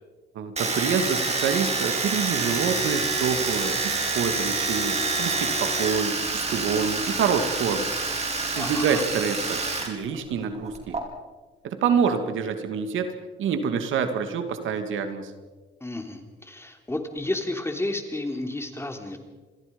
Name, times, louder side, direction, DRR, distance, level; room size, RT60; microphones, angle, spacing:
voice 1, 0.3-7.9 8.5-11.0 11.6-13.1 13.4-15.3, right 6 dB, 80° right, 8 dB, 2.4 m, -27 dB
Domestic sounds home sounds, 0.6-9.9 10.1-11.0, right 3 dB, 35° right, 4.8 m, -27 dB
voice 2, 8.6-9.0 15.8-19.2, left 2 dB, 10° left, 5 dB, 3.5 m, -31 dB
28.0 x 21.5 x 5.4 m, 1.3 s
cardioid pair, 90°, 20 cm